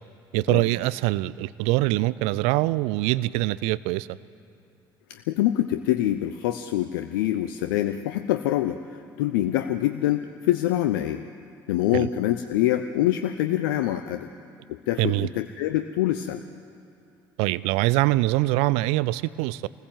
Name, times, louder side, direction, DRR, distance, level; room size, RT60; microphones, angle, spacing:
voice 1, 0.3-4.1 11.9-12.1 15.0-15.3 17.4-19.7, right 18 dB, 65° right, 19 dB, 0.6 m, -23 dB
voice 2, 5.1-11.2 11.7-14.3 14.7-16.4, left 13 dB, 70° left, 8 dB, 0.8 m, -25 dB
27.5 x 20.0 x 7.6 m, 2.6 s
figure-of-eight pair, 55°, 12 cm